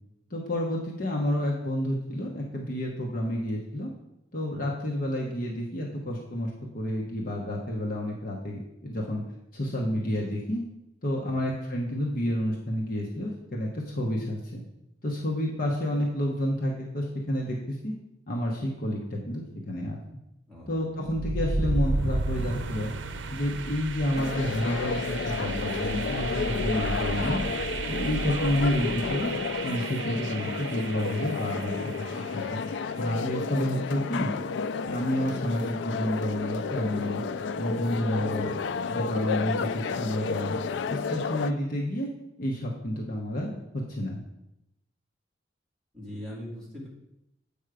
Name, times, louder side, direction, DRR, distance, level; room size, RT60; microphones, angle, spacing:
voice 1, 0.3-3.9 4.3-9.2 9.5-10.6 11.0-14.6 15.0-17.9 18.3-20.0 20.7-22.9 23.3-27.4 27.9-29.3 29.6-31.9 32.3-32.6 33.0-34.3 34.8-37.2 37.6-38.5 38.9-40.6 40.9-42.1 42.4-44.2, left 1 dB, 50° left, -2 dB, 1.1 m, -30 dB
voice 2, 20.5-20.8 38.1-38.6 45.9-46.9, left 1 dB, 5° left, -7 dB, 2.5 m, -41 dB
sound 1, 21.0-32.9, right 2 dB, 80° right, 0.6 m, -33 dB
sound 2, 24.1-41.5, left 5 dB, 70° left, 0.3 m, -32 dB
7.7 x 5.4 x 4.9 m, 0.86 s
head